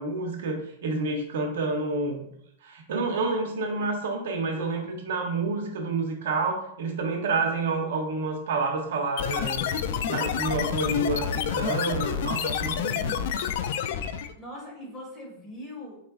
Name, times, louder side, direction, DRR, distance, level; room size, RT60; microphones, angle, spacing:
voice 1, 0.0-2.2 2.6-13.1, right 3 dB, 75° right, 2 dB, 0.8 m, -29 dB
sound 1, 9.2-14.3, left 8 dB, 60° left, 0.3 m, -28 dB
voice 2, 13.0-13.5 14.0-16.0, left 1 dB, 10° left, -4 dB, 1.6 m, -42 dB
4.7 x 4.0 x 2.4 m, 0.76 s
supercardioid pair, 145°, 0 cm